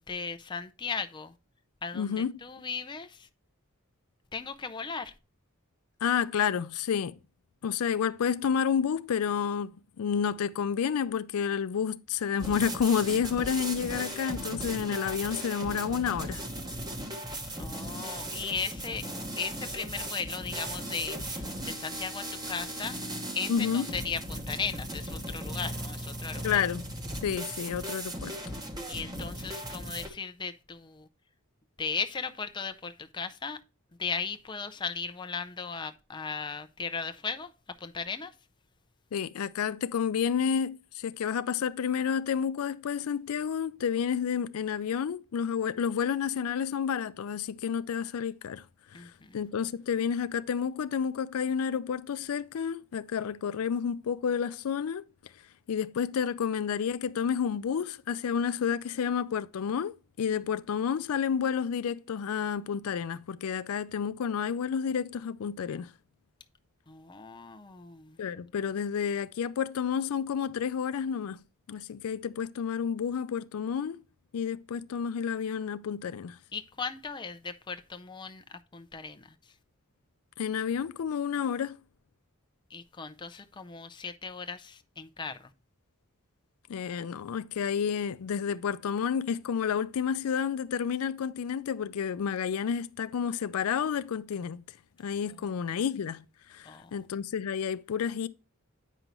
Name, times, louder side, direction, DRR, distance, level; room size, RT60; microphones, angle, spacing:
voice 1, 0.0-1.3 1.8-3.3 4.3-5.1 17.6-19.1 19.4-23.0 23.3-26.6 28.9-31.1 31.8-33.6 34.0-38.3 48.9-49.4 66.9-68.2 76.5-79.3 82.7-85.5 95.5-95.6 96.7-96.9, left 5 dB, 20° left, 0.5 m, -37 dB
voice 2, 1.9-2.3 6.0-7.2 7.6-16.4 23.5-23.9 26.4-26.9 27.2-28.3 39.1-48.7 48.9-55.0 55.7-65.9 68.2-74.0 74.3-76.4 80.4-81.8 86.7-94.6 95.0-96.2 96.5-98.3, left 7 dB, 80° left, 0.4 m, -30 dB
sound 1, 12.4-30.1, right 1 dB, 20° right, 1.1 m, -37 dB
9.0 x 5.3 x 3.0 m
head